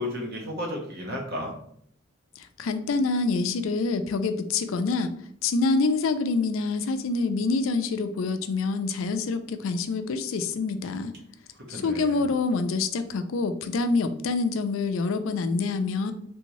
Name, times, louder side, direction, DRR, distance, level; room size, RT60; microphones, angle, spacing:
voice 1, 0.0-1.5 11.7-12.3, left 1 dB, 55° right, 0 dB, 0.9 m, -33 dB
voice 2, 2.4-5.1 5.4-11.1 11.7-16.1, left 3 dB, 85° left, 9 dB, 0.4 m, -26 dB
3.4 x 2.7 x 3.0 m, 0.68 s
head